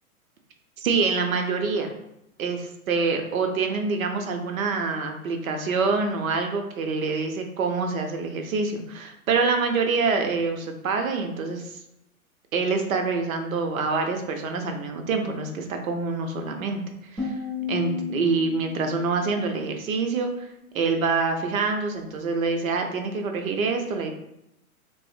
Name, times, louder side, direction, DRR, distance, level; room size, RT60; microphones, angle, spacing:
voice 1, 0.8-1.9 2.4-11.7 12.5-16.8 17.1-17.4 17.7-24.1, right 4 dB, 70° right, 4 dB, 0.6 m, -26 dB
sound 1, 17.2-20.2, left 4 dB, 10° right, 0.4 m, -33 dB
2.9 x 2.0 x 2.5 m, 0.82 s
figure-of-eight pair, 110°, 43 cm